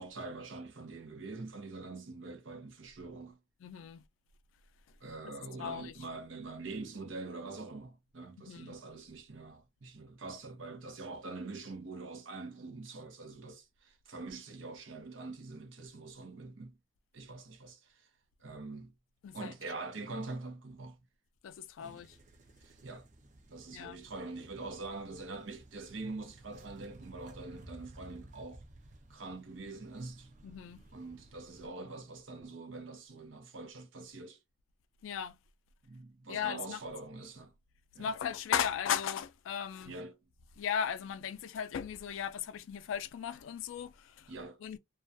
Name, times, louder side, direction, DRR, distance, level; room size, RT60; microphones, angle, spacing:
voice 1, 0.0-3.4 5.0-16.7 17.1-18.1 18.4-18.9 19.3-21.0 21.8-22.0 22.6-23.1 23.5-28.6 29.1-30.3 30.9-34.4 35.8-37.5 37.9-38.1 39.9-40.2 44.3-44.6, right 3 dB, 80° right, 0.7 m, -44 dB
voice 2, 3.6-4.0 5.6-5.9 8.4-8.8 19.2-19.5 21.4-22.2 23.7-24.0 30.4-30.8 35.0-35.4 36.3-36.8 38.0-40.0 40.6-44.3 44.6-44.8, left 8 dB, 85° left, 0.3 m, -36 dB
sound 1, 21.8-31.7, right 2 dB, 40° right, 0.5 m, -56 dB
2.3 x 2.2 x 2.6 m
head